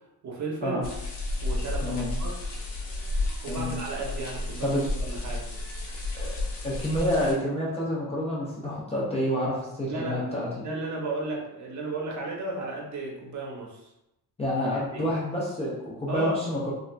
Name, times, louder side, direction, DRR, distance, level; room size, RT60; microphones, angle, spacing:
voice 1, 0.2-0.9 1.4-2.4 3.4-5.5 9.8-10.3 10.6-13.9 14.9-15.1 16.1-16.4, right 3 dB, 45° right, -1 dB, 0.7 m, -34 dB
sound 1, 0.8-7.3, left 2 dB, 80° left, 0.9 m, -32 dB
voice 2, 1.8-2.1 3.5-3.8 4.6-4.8 6.1-6.3 6.6-10.7 14.4-16.7, left 1 dB, 15° left, -6 dB, 0.4 m, -28 dB
3.2 x 2.4 x 2.2 m, 0.88 s
cardioid pair, 150°, 40 cm